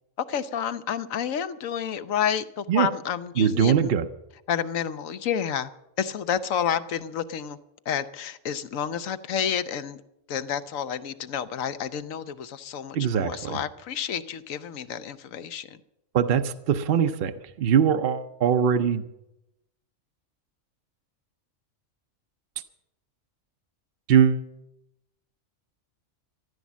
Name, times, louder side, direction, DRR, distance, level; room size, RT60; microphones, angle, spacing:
voice 1, 0.2-3.9 4.5-5.7 6.0-7.6 7.9-10.0 10.3-15.8, left 8 dB, 80° left, 12 dB, 1.2 m, -30 dB
voice 2, 3.4-4.1 12.9-13.6 16.1-17.3 17.6-19.1 24.1-24.5, right 8 dB, 55° right, 8 dB, 0.7 m, -21 dB
14.5 x 11.5 x 7.3 m, 0.88 s
omnidirectional pair, 1.4 m